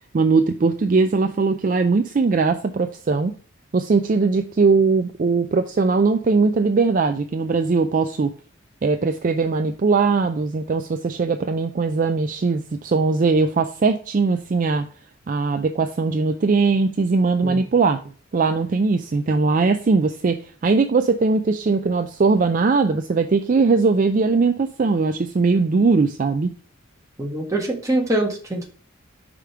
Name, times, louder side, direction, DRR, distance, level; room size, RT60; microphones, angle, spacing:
voice 1, 0.1-3.3 3.7-8.3 8.8-14.9 15.3-18.0 18.3-26.5, right 4 dB, 40° right, 7 dB, 0.4 m, -20 dB
voice 2, 27.2-28.7, right 1 dB, 15° right, -1 dB, 1.4 m, -24 dB
5.0 x 5.0 x 4.5 m, 0.41 s
head